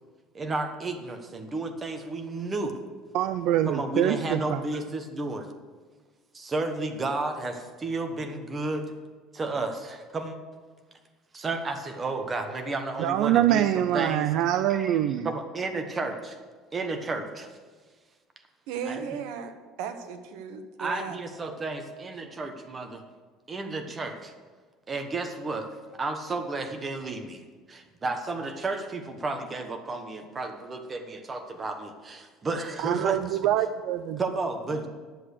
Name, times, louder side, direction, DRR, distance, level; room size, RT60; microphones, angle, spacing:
voice 1, 0.3-2.8 3.7-5.5 6.3-8.9 9.3-10.4 11.3-14.4 14.7-15.0 15.2-16.4 16.7-17.5 18.8-19.0 20.8-23.0 23.5-24.3 24.9-25.7 25.9-33.4 34.2-34.9, right 3 dB, 20° right, 6 dB, 1.2 m, -32 dB
voice 2, 3.1-4.6 13.0-15.3 32.8-34.2, right 12 dB, 65° right, 11 dB, 0.4 m, -25 dB
voice 3, 18.7-19.5 19.8-21.2, right 6 dB, 80° right, 8 dB, 1.1 m, -35 dB
10.5 x 7.5 x 6.5 m, 1.5 s
cardioid pair, 150°, 0 cm